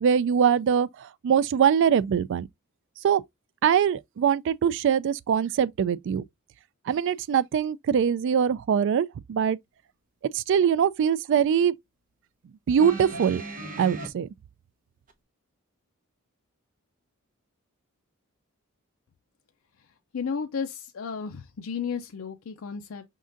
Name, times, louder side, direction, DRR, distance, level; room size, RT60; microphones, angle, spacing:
voice 1, 0.0-2.5 3.0-3.2 3.6-6.2 6.9-9.6 10.3-11.7 12.7-13.4 13.8-14.3, right 8 dB, 60° right, 0.3 m, -23 dB
sound 1, 12.8-14.1 15.1-15.2, right 2 dB, 40° right, 0.9 m, -37 dB
voice 2, 20.1-23.0, left 6 dB, 70° left, 0.5 m, -33 dB
5.3 x 3.7 x 2.5 m
head